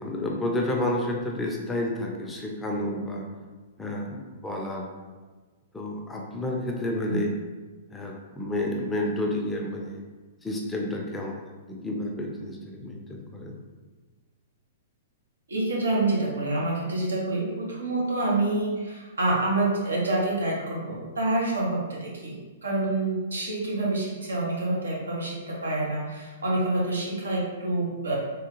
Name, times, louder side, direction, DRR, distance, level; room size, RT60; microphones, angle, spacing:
voice 1, 0.0-3.3 3.8-4.9 5.7-7.3 7.9-10.0 10.4-13.6, left 1 dB, 10° left, -1 dB, 0.5 m, -30 dB
voice 2, 15.5-22.4 22.6-28.1, right 2 dB, 80° right, -4 dB, 0.9 m, -27 dB
3.4 x 2.3 x 3.0 m, 1.3 s
figure-of-eight pair, 110°, 0 cm